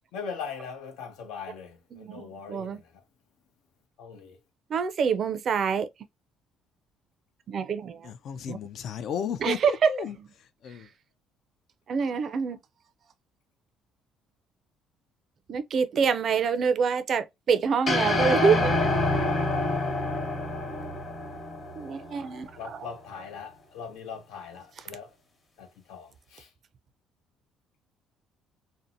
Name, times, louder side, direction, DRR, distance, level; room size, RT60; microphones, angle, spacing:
voice 1, 0.1-3.0 4.0-4.4 22.6-25.2 25.6-26.5, left 6 dB, 90° left, 0.8 m, -40 dB
voice 2, 1.9-2.8 4.7-5.9 7.5-8.1 8.5-8.6 9.4-9.9 11.9-12.6 15.5-18.7 21.8-22.5, right 6 dB, 45° right, 0.4 m, -26 dB
voice 3, 8.0-10.2 10.6-10.9, left 8 dB, 60° left, 0.3 m, -34 dB
sound 1, 17.9-22.3, left 2 dB, 35° left, 0.9 m, -27 dB
2.6 x 2.1 x 2.5 m
cardioid pair, 115°, 0 cm